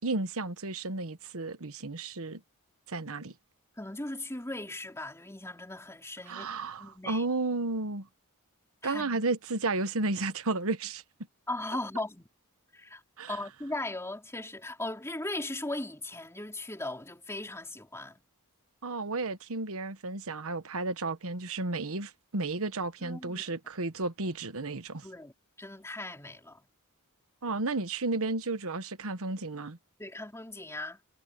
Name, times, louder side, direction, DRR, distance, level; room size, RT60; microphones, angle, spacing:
voice 1, 0.0-2.4 2.9-3.3 6.3-8.1 8.8-11.0 13.2-13.4 18.8-25.1 27.4-29.8, right 3 dB, 65° right, 1.3 m, -33 dB
voice 2, 3.8-6.5 6.8-7.2 8.8-9.2 11.5-12.3 12.7-13.0 13.3-18.2 23.0-23.5 25.0-25.3 25.6-26.6 30.0-31.0, left 2 dB, 10° left, 4.2 m, -38 dB
head